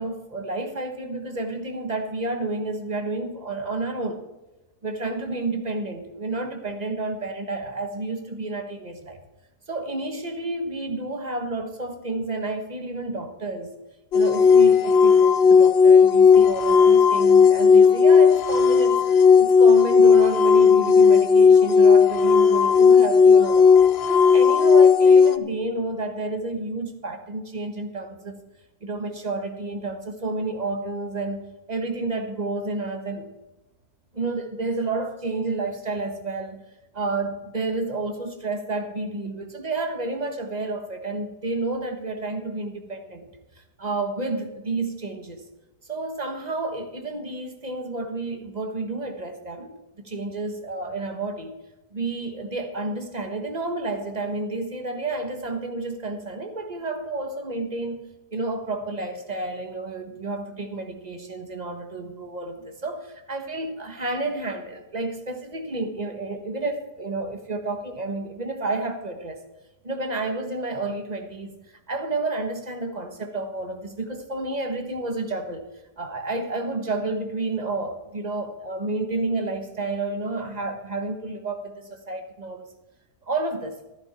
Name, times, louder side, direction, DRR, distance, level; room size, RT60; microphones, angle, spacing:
voice 1, 0.0-4.2 4.8-9.2 9.7-13.7 14.1-19.0 19.4-23.7 24.0-28.4 28.8-33.3 34.1-36.6 36.9-43.3 43.6-45.4 45.9-51.6 51.9-58.0 58.3-69.4 69.8-75.7 76.0-82.7 83.3-83.7, right 2 dB, 25° right, 6 dB, 1.4 m, -30 dB
sound 1, 14.1-25.4, left 6 dB, 60° left, 0.6 m, -15 dB
14.0 x 12.0 x 4.3 m, 1.0 s
omnidirectional pair, 1.7 m